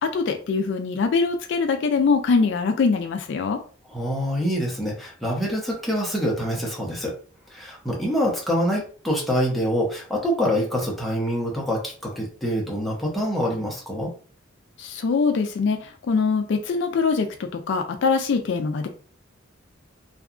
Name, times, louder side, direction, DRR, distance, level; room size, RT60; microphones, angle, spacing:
voice 1, 0.0-3.6 14.8-18.9, left 4 dB, 65° left, 6 dB, 0.3 m, -23 dB
voice 2, 3.9-7.2 7.5-14.1, equal, ahead, -3 dB, 0.7 m, -25 dB
2.8 x 2.3 x 2.4 m, 0.42 s
head